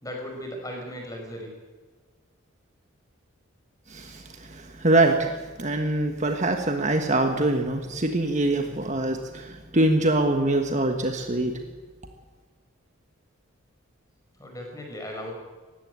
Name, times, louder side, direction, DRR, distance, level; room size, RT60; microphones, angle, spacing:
voice 1, 0.0-1.5 14.4-15.3, equal, 15° left, 2 dB, 5.1 m, -36 dB
voice 2, 3.9-11.6, right 2 dB, 35° right, 5 dB, 1.4 m, -24 dB
19.0 x 15.0 x 9.6 m, 1.4 s
head